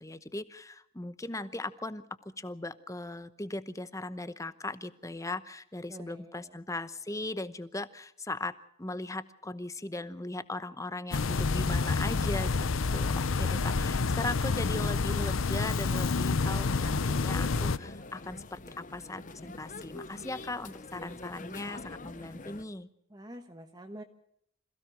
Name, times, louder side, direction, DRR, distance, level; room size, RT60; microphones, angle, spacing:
voice 1, 0.0-8.5 8.8-22.9, left 2 dB, 15° left, 14 dB, 0.9 m, -38 dB
voice 2, 5.9-6.6 12.7-12.9 13.7-14.1 23.1-24.0, right 1 dB, 20° right, 5 dB, 1.2 m, -47 dB
sound 1, 11.1-17.8, left 4 dB, 85° left, 0.7 m, -28 dB
sound 2, 16.4-22.6, left 2 dB, 40° left, 0.9 m, -45 dB
27.0 x 16.5 x 6.5 m, 0.70 s
head